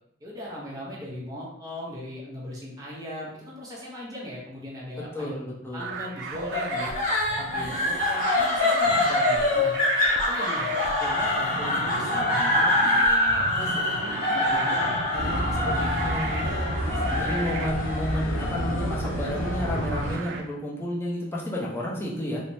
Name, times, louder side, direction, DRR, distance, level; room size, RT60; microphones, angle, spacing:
voice 1, 0.2-5.3 5.7-6.9 7.4-9.7 10.3-16.1 16.8-17.4, left 1 dB, 20° right, -5 dB, 0.8 m, -39 dB
voice 2, 5.1-5.9 15.6-16.7 17.1-22.4, equal, 10° left, -4 dB, 0.6 m, -31 dB
sound 1, 5.8-20.4, right 4 dB, 60° right, 0.3 m, -36 dB
sound 2, 6.5-19.7, left 2 dB, 45° left, 0.8 m, -25 dB
sound 3, 15.1-20.2, left 1 dB, 85° left, 0.5 m, -30 dB
3.2 x 2.0 x 2.6 m, 0.77 s
head